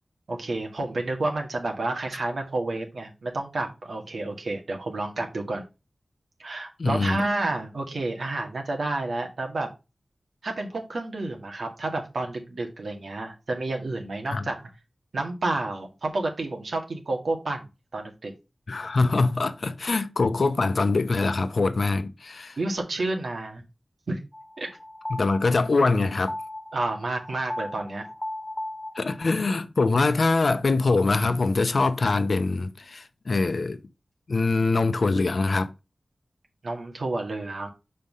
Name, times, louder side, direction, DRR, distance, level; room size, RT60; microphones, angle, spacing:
voice 1, 0.3-5.6 6.4-9.7 10.4-14.6 15.1-17.6 17.9-18.3 19.0-19.2 22.6-23.6 24.1-24.2 24.6-24.7 26.7-28.1 36.6-37.7, right 2 dB, 85° right, 1.9 m, -30 dB
voice 2, 6.8-7.2 14.3-14.5 18.7-22.6 25.1-26.3 29.0-33.8 34.3-35.7, left 3 dB, 70° left, 0.7 m, -23 dB
sound 1, 24.3-29.5, left 1 dB, 25° left, 0.5 m, -37 dB
5.6 x 4.3 x 5.4 m
wide cardioid pair, 70°, 0 cm